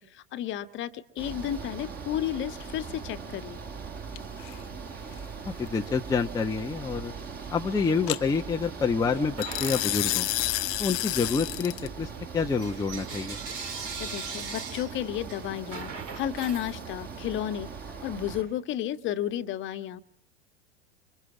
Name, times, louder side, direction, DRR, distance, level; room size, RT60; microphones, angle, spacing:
voice 1, 0.3-3.6 14.0-17.7 18.0-20.0, left 11 dB, 35° left, 8 dB, 1.7 m, -32 dB
sound 1, 1.2-18.4, right 5 dB, 25° right, 6.2 m, -40 dB
sound 2, 4.2-4.5 8.1-8.2 9.4-11.9, left 19 dB, 50° left, 1.0 m, -29 dB
voice 2, 5.6-7.1 7.5-10.3 10.8-13.4, left 5 dB, 10° left, 1 dB, 1.2 m, -28 dB
Bell / Coin (dropping), 9.3-10.9 11.3-17.3, right 5 dB, 50° right, 5.6 m, -41 dB
29.0 x 26.5 x 6.2 m, 0.64 s
figure-of-eight pair, 90°, 34 cm